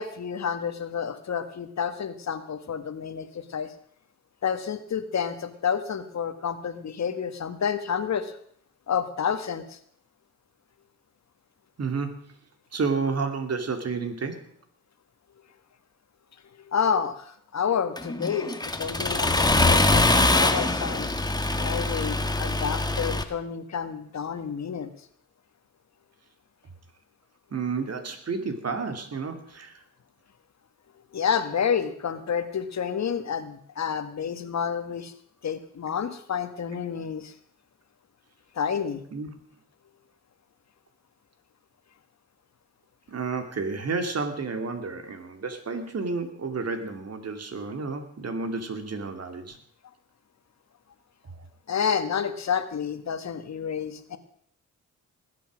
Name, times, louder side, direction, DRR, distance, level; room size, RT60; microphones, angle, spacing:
voice 1, 0.0-3.7 4.4-8.4 8.9-9.8 16.6-21.1 21.6-24.9 31.1-35.1 35.4-37.3 38.5-39.0 51.7-54.2, left 7 dB, 55° left, 10 dB, 1.7 m, -29 dB
voice 2, 11.8-12.4 12.7-14.5 27.5-29.8 39.1-39.3 43.1-49.6 51.3-51.4, right 4 dB, 50° right, 7 dB, 2.6 m, -31 dB
Accelerating revving vroom, 18.0-23.2, left 2 dB, 10° left, 1.5 m, -23 dB
20.0 x 8.5 x 6.3 m, 0.62 s
cardioid pair, 75°, 32 cm